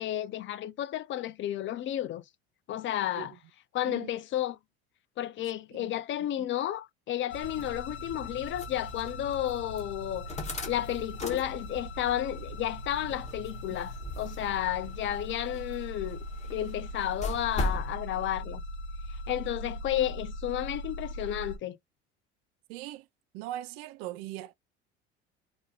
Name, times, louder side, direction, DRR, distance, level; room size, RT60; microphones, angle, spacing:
voice 1, 0.0-2.2 2.7-3.3 3.7-4.6 5.2-10.3 10.7-16.2 16.5-18.6 19.3-21.8, left 12 dB, 40° left, 0.5 m, -32 dB
sound 1, 7.3-21.6, equal, 90° left, 0.6 m, -40 dB
sound 2, 7.4-17.9, left 2 dB, 20° left, 1.1 m, -40 dB
voice 2, 22.7-23.1 23.3-24.5, right 14 dB, 65° right, 0.5 m, -40 dB
2.6 x 2.1 x 3.6 m
hypercardioid pair, 75°, 31 cm